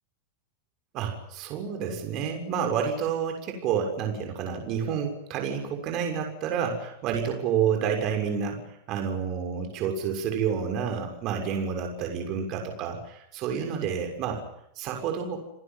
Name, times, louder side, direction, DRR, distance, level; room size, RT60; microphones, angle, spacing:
voice 1, 0.9-14.4 14.8-15.4, right 7 dB, 30° right, 3 dB, 6.6 m, -29 dB
29.5 x 21.0 x 9.4 m, 0.77 s
supercardioid pair, 175°, 0 cm